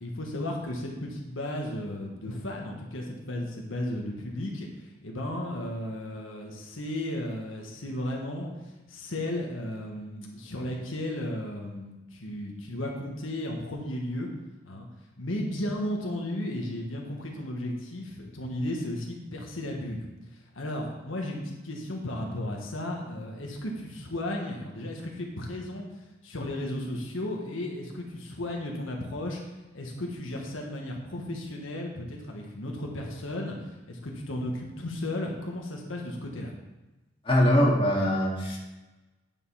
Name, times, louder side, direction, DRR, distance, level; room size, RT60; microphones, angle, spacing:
voice 1, 0.0-4.7 5.0-8.5 8.9-14.3 14.6-14.9 15.2-20.1 20.3-25.8 26.2-29.4 29.7-33.6 33.9-36.5, left 1 dB, 85° left, 0 dB, 1.5 m, -34 dB
voice 2, 37.3-38.6, equal, 30° left, -4 dB, 2.1 m, -22 dB
9.2 x 5.4 x 5.6 m, 1.1 s
head